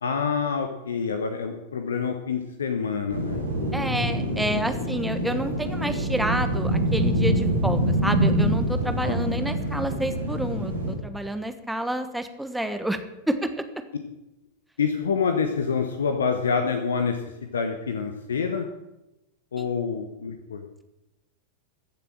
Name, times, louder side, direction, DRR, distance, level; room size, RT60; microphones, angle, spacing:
voice 1, 0.0-3.4 9.0-9.3 14.8-18.7 19.5-20.6, left 5 dB, 70° left, 6 dB, 1.1 m, -27 dB
sound 1, 3.1-10.9, right 1 dB, 75° right, 4.4 m, -25 dB
voice 2, 3.7-13.6 19.6-19.7, right 1 dB, 5° right, 8 dB, 1.3 m, -29 dB
15.0 x 7.4 x 7.5 m, 0.96 s
figure-of-eight pair, 90°, 0 cm